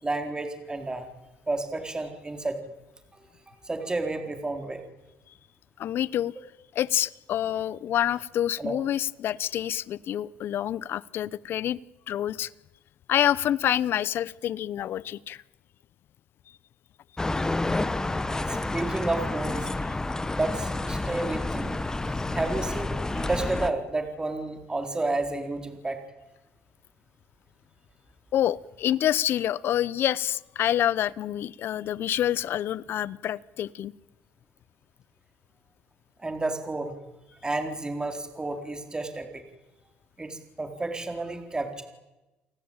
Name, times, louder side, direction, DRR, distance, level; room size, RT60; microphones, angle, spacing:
voice 1, 0.0-1.1 1.5-2.6 3.6-4.8 8.6-8.8 18.5-19.7 20.3-21.7 22.3-26.0 36.2-36.9 37.4-39.4 40.2-41.8, right 2 dB, 20° right, 6 dB, 4.1 m, -31 dB
voice 2, 5.8-6.3 6.7-11.8 12.1-12.5 13.1-15.4 28.3-33.9, left 11 dB, 60° left, 21 dB, 0.9 m, -27 dB
sound 1, 17.2-23.7, left 2 dB, 15° left, 1.4 m, -29 dB
29.0 x 18.5 x 9.0 m, 1.0 s
supercardioid pair, 85°, 4 cm